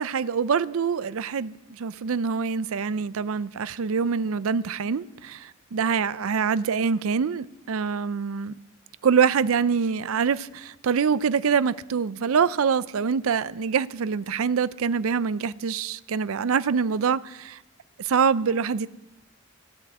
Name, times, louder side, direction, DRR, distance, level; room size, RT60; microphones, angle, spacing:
voice 1, 0.0-8.6 9.0-17.6 18.0-18.9, right 6 dB, 70° right, 0.4 m, -25 dB
15.0 x 9.7 x 7.7 m
head